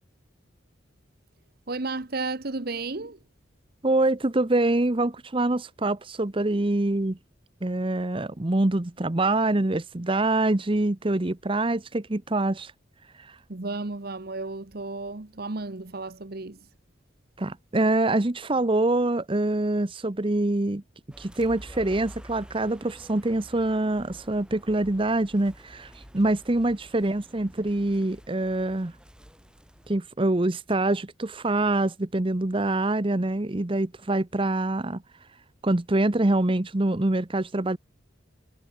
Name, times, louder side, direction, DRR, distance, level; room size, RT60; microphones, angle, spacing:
voice 1, 1.7-3.2 13.5-16.6, right 3 dB, 50° right, 1.1 m, -33 dB
voice 2, 3.8-7.2 7.6-12.7 13.2-13.4 17.4-20.8 21.2-28.9 29.9-35.0 35.6-37.8, right 2 dB, 25° right, 0.8 m, -25 dB
sound 1, 21.1-30.0, equal, 5° right, 4.0 m, -49 dB
head